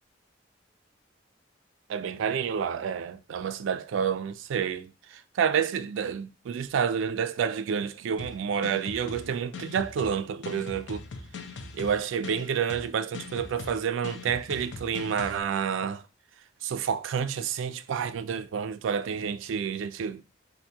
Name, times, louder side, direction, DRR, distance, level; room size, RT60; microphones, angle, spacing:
voice 1, 1.9-11.0 11.7-16.0 16.6-20.2, right 7 dB, 80° right, 0.3 m, -29 dB
sound 1, 8.2-15.4, left 4 dB, 65° left, 0.4 m, -41 dB
3.4 x 2.5 x 2.8 m
head